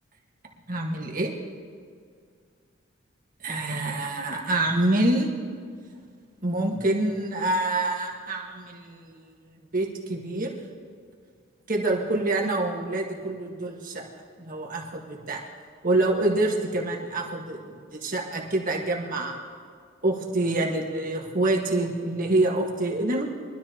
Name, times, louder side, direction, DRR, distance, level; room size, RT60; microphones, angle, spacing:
voice 1, 0.7-1.3 3.4-5.3 6.4-9.3 9.7-10.5 11.7-14.1 14.4-15.4 15.8-19.4 20.0-23.2, right 2 dB, 45° right, -1 dB, 1.6 m, -26 dB
22.5 x 13.5 x 2.9 m, 2.1 s
head